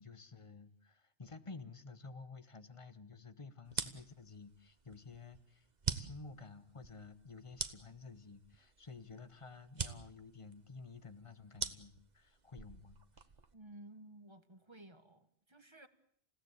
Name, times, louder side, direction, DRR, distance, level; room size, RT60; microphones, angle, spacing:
voice 1, 0.0-5.7 5.9-13.0, left 4 dB, 30° left, 12 dB, 1.2 m, -52 dB
sound 1, 3.6-13.5, right 5 dB, 40° right, 1.3 m, -44 dB
voice 2, 13.5-15.9, right 1 dB, 25° right, 10 dB, 1.5 m, -55 dB
28.5 x 16.5 x 8.2 m, 0.68 s
omnidirectional pair, 1.2 m